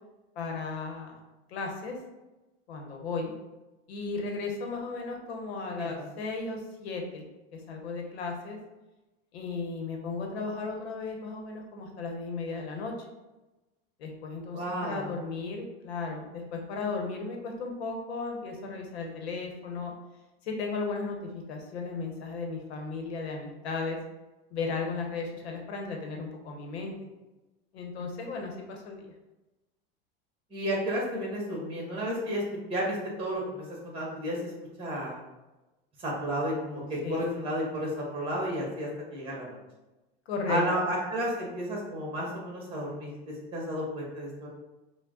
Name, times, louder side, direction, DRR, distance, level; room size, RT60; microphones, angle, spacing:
voice 1, 0.4-1.2 1.5-1.9 2.7-3.3 3.9-7.2 7.5-8.6 9.3-12.9 14.0-19.9 20.4-24.0 24.5-26.9 27.7-29.1 37.0-37.2 40.3-40.9, left 4 dB, 90° left, 2 dB, 0.9 m, -35 dB
voice 2, 14.5-15.1 30.5-32.4 32.7-34.5 34.8-35.1 36.0-39.6 40.5-44.5, equal, 20° right, -3 dB, 1.4 m, -32 dB
4.6 x 2.2 x 3.7 m, 1.1 s
supercardioid pair, 110°, 31 cm